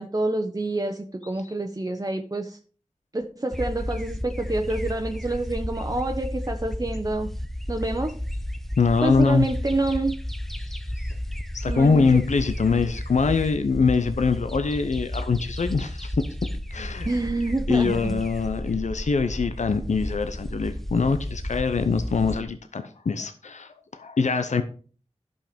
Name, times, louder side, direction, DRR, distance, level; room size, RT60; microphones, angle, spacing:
voice 1, 0.0-2.6 3.1-7.3 7.7-8.1 9.0-10.1 11.7-12.2 17.1-18.2, right 2 dB, 30° right, 4 dB, 1.0 m, -27 dB
sound 1, 3.5-22.4, left 1 dB, ahead, 0.9 m, -33 dB
voice 2, 8.8-9.5 10.6-10.8 11.5-16.2 16.7-17.1 17.7-24.6, left 4 dB, 90° left, 9 dB, 0.8 m, -23 dB
12.0 x 5.7 x 5.1 m, 0.41 s
wide cardioid pair, 55°, 12 cm